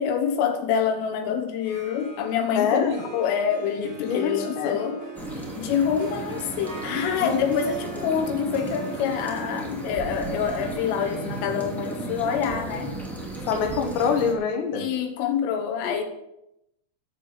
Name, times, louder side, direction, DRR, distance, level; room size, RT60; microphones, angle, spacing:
voice 1, 0.0-5.0 5.6-13.0 14.8-16.0, left 7 dB, 85° left, 4 dB, 3.8 m, -26 dB
Harp, 1.5-14.4, right 1 dB, 85° right, 1.1 m, -40 dB
voice 2, 2.6-3.0 3.8-4.8 7.1-7.6 13.5-14.9 15.8-16.0, left 6 dB, 70° left, 4 dB, 3.6 m, -26 dB
sound 1, 5.1-14.3, right 2 dB, ahead, 0.4 m, -35 dB
12.5 x 7.1 x 7.3 m, 0.83 s
omnidirectional pair, 5.6 m